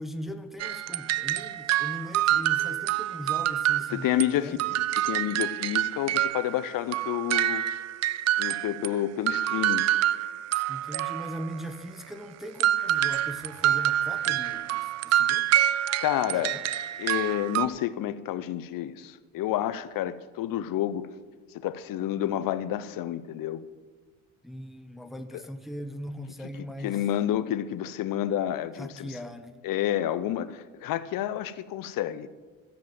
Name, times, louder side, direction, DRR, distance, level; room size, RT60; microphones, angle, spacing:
voice 1, 0.0-4.6 10.7-15.5 16.3-16.7 24.4-27.0 28.8-29.5, equal, ahead, 7 dB, 1.0 m, -39 dB
sound 1, 0.6-4.3 4.6-8.9 9.3-11.6 12.6-17.7, right 12 dB, 45° right, 0.5 m, -27 dB
voice 2, 3.9-4.6 4.9-7.6 8.4-9.8 16.0-16.6 17.0-21.1 21.5-23.6 26.8-29.1 29.6-32.3, left 12 dB, 60° left, 15 dB, 0.8 m, -29 dB
13.5 x 7.4 x 7.7 m, 1.4 s
supercardioid pair, 85°, 38 cm